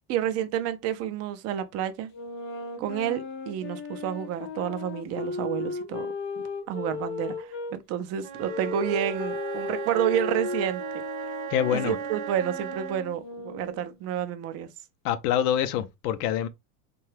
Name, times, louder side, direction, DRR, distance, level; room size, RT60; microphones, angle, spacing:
voice 1, 0.1-2.1 2.8-6.1 6.7-10.8 11.7-14.7, right 10 dB, 35° right, 0.4 m, -30 dB
sound 1, 2.1-7.7 8.4-14.0, left 4 dB, 30° left, 0.5 m, -36 dB
Wind instrument woodwind instrument, 8.2-13.1, right 12 dB, 80° right, 0.7 m, -36 dB
voice 2, 11.5-12.0 15.0-16.5, left 10 dB, 85° left, 0.6 m, -25 dB
2.8 x 2.3 x 3.1 m
supercardioid pair, 135°, 45 cm